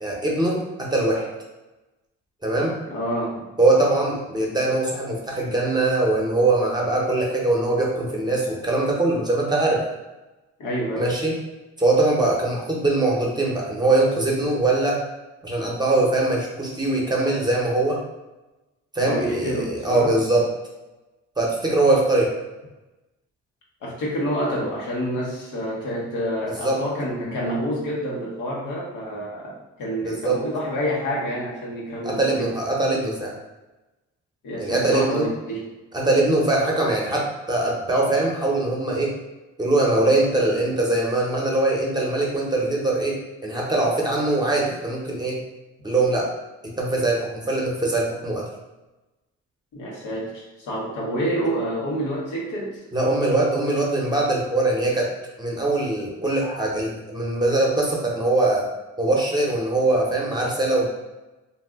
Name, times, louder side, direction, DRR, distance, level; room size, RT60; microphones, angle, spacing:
voice 1, 0.0-1.3 2.4-2.8 3.6-9.9 11.0-11.4 11.8-15.0 15.4-18.0 18.9-20.5 21.4-22.3 26.5-26.8 30.0-30.4 32.0-33.3 34.6-35.3 35.9-39.2 39.6-45.4 45.8-46.3 46.6-48.4 52.9-55.1 55.4-58.7 59.0-60.9, right 2 dB, 15° right, -3 dB, 0.8 m, -22 dB
voice 2, 2.9-3.5 10.6-11.1 19.0-20.1 23.8-32.6 34.4-35.7 49.7-52.8, equal, 85° left, -4 dB, 1.0 m, -28 dB
2.6 x 2.3 x 3.5 m, 1.1 s
cardioid pair, 90°, 30 cm